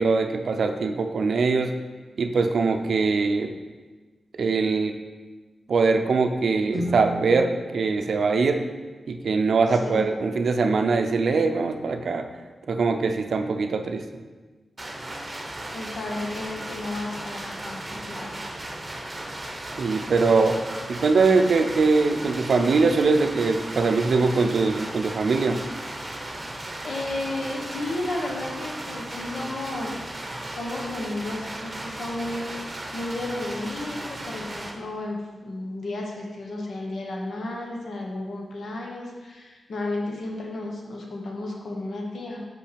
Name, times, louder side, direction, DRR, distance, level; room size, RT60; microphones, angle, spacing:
voice 1, 0.0-1.7 2.2-3.5 4.4-5.0 5.7-8.6 9.1-12.3 12.7-14.1 19.8-20.6 20.9-25.6, right 4 dB, 65° right, 6 dB, 0.5 m, -22 dB
Guitar, 6.7-9.3, right 1 dB, 50° left, 2.2 m, -35 dB
voice 2, 9.7-10.1 15.7-18.4 26.8-30.0 30.5-32.4 32.9-42.4, left 2 dB, 65° left, -1 dB, 1.2 m, -33 dB
sound 1, 14.8-34.7, right 1 dB, 25° right, 0.9 m, -36 dB
6.0 x 5.4 x 5.1 m, 1.3 s
wide cardioid pair, 140°, 0 cm